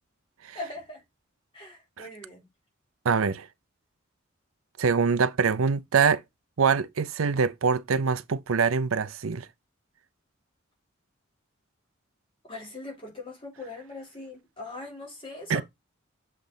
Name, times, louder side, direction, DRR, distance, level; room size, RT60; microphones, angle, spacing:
voice 1, 0.6-1.0 1.5-2.5 12.5-15.6, left 2 dB, 25° left, 3.5 m, -40 dB
voice 2, 3.0-3.5 4.8-6.2 6.6-9.5 15.5-15.6, right 5 dB, 90° right, 0.6 m, -24 dB
7.4 x 3.3 x 3.9 m
head